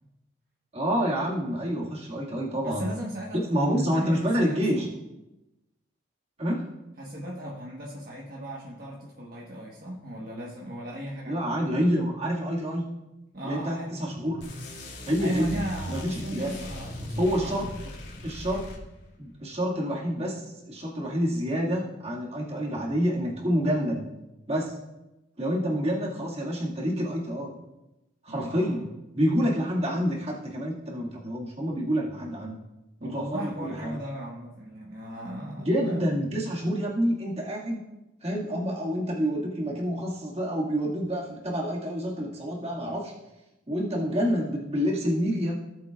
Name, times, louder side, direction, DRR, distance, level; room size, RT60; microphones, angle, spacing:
voice 1, 0.7-2.9 3.3-4.9 6.4-6.6 11.3-12.9 13.4-14.4 15.1-15.6 15.9-16.5 17.2-17.7 18.2-18.6 19.2-24.1 24.5-24.7 25.4-27.5 28.2-28.8 29.2-32.6 33.0-34.0 35.6-37.8 38.2-43.1 43.7-45.5, equal, 35° right, -3 dB, 2.0 m, -28 dB
voice 2, 2.6-4.9 7.0-11.5 13.3-14.2 15.2-18.0 28.3-28.9 33.0-36.2, right 1 dB, 50° right, -4 dB, 1.3 m, -37 dB
sound 1, 14.4-19.2, left 1 dB, 65° left, 2.1 m, -39 dB
17.5 x 7.6 x 2.4 m, 0.98 s
head